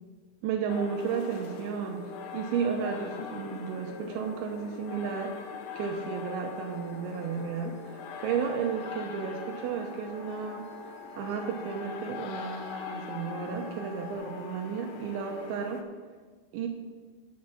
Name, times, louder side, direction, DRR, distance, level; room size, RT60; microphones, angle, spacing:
voice 1, 0.4-5.3 5.8-15.8 16.5-16.7, right 6 dB, 85° right, 2 dB, 3.0 m, -33 dB
sound 1, 0.7-15.8, left 6 dB, 75° left, 2.5 m, -42 dB
sound 2, 6.4-14.2, left 3 dB, 40° left, 1.9 m, -49 dB
7.5 x 7.2 x 5.9 m, 1.5 s
omnidirectional pair, 5.4 m